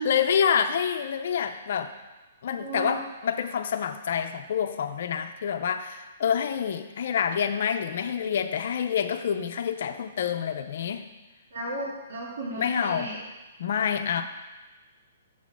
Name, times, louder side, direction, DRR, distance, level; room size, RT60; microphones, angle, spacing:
voice 1, 0.0-1.9 2.4-11.1 12.6-13.1 13.6-14.2, left 8 dB, 60° left, 8 dB, 0.5 m, -27 dB
voice 2, 2.5-3.0 11.5-13.2, right 2 dB, 65° right, -7 dB, 2.4 m, -34 dB
7.3 x 4.1 x 6.0 m, 1.2 s
hypercardioid pair, 155°, 0 cm